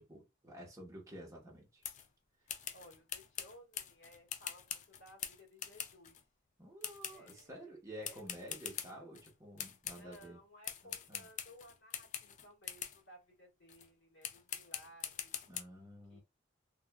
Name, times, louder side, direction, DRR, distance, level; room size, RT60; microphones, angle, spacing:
voice 1, 0.0-1.8 6.6-10.4 10.8-11.3 15.5-16.2, equal, 15° right, 0.8 m, -51 dB
sound 1, 1.8-2.1 2.5-6.2 6.8-7.4 8.0-9.3 9.6-10.3 10.6-13.0 13.7-13.9 14.2-15.6, left 9 dB, 40° left, 0.3 m, -44 dB
voice 2, 2.4-6.2 7.1-8.7 9.0-9.2 9.8-15.4 16.1-16.2, equal, 70° left, 1.6 m, -59 dB
2.9 x 2.3 x 2.2 m
head